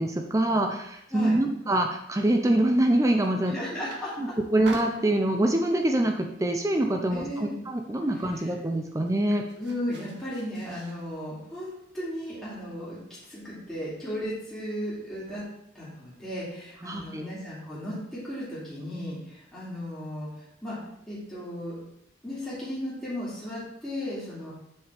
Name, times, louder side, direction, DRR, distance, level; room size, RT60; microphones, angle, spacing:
voice 1, 0.0-3.5 4.2-9.4 16.8-17.3, right 1 dB, 15° right, 4 dB, 0.5 m, -25 dB
sound 1, 2.7-3.4 3.7-4.3 4.6-5.6 6.1-6.4 6.7-7.6 7.9-8.0 8.2-11.0, right 3 dB, 65° right, 1.0 m, -46 dB
voice 2, 3.5-4.3 7.1-7.6 8.1-8.5 9.6-13.0 13.3-15.4 15.7-20.8 21.1-21.8 22.2-24.5, equal, 5° left, -11 dB, 2.7 m, -35 dB
7.3 x 6.3 x 3.5 m, 0.77 s
head